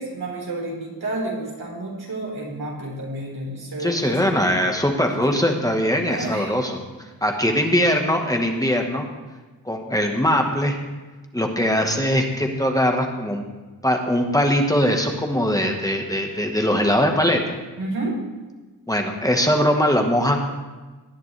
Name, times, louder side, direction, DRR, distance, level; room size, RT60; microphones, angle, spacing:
voice 1, 0.0-4.3 5.1-5.5 6.1-6.6 17.8-18.1, right 2 dB, 90° right, -3 dB, 4.4 m, -30 dB
voice 2, 3.8-6.8 7.2-9.0 9.6-10.8 11.3-13.4 13.8-17.4 18.9-20.4, equal, 10° left, 2 dB, 1.3 m, -21 dB
19.0 x 10.0 x 3.3 m, 1.3 s
wide cardioid pair, 115°, 36 cm